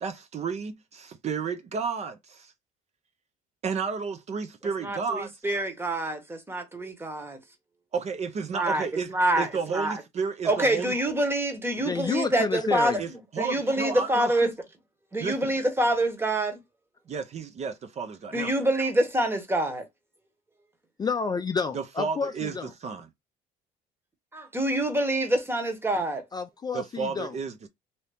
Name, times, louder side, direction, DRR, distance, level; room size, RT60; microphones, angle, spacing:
voice 1, 0.0-2.5 3.6-5.3 7.9-10.9 13.0-14.3 15.2-15.5 17.1-18.5 21.7-23.1 26.7-27.7, right 5 dB, 40° right, 0.6 m, -32 dB
voice 2, 4.8-7.4 8.5-10.0 10.4-13.0 13.4-14.5 15.1-16.6 18.3-19.8 24.3-26.2, right 1 dB, 15° right, 1.0 m, -26 dB
voice 3, 11.8-13.0 21.0-22.7 26.3-27.4, left 5 dB, 25° left, 0.4 m, -29 dB
2.8 x 2.7 x 3.4 m
cardioid pair, 110°, 17 cm